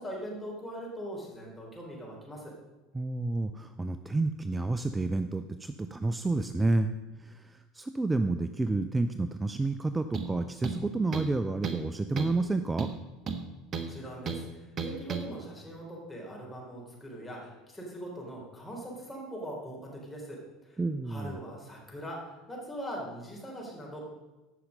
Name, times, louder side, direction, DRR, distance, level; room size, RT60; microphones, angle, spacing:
voice 1, 0.0-2.5 13.7-20.8 21.1-24.0, equal, 10° left, -3 dB, 4.1 m, -41 dB
voice 2, 2.9-6.9 7.8-12.9 20.8-21.4, right 2 dB, 15° right, 9 dB, 0.5 m, -30 dB
sound 1, 10.1-10.3 10.6-11.4 11.6-11.9 12.2-12.4 12.8-13.9 14.3-14.4 14.8-15.3, right 5 dB, 40° right, 1.1 m, -34 dB
14.5 x 5.8 x 5.2 m, 1.1 s
hypercardioid pair, 70°, 0 cm